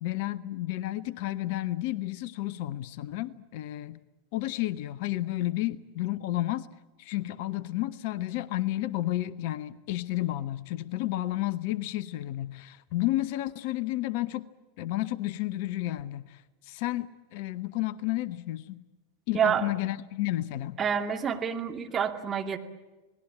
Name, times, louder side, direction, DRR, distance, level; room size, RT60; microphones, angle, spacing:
voice 1, 0.0-4.0 4.3-6.7 7.0-14.4 14.8-18.8 19.3-20.8, left 16 dB, 50° left, 18 dB, 0.9 m, -31 dB
voice 2, 19.3-19.7 20.8-22.6, right 8 dB, 20° right, 3 dB, 2.4 m, -28 dB
28.5 x 19.5 x 8.6 m, 1.2 s
figure-of-eight pair, 90°, 0 cm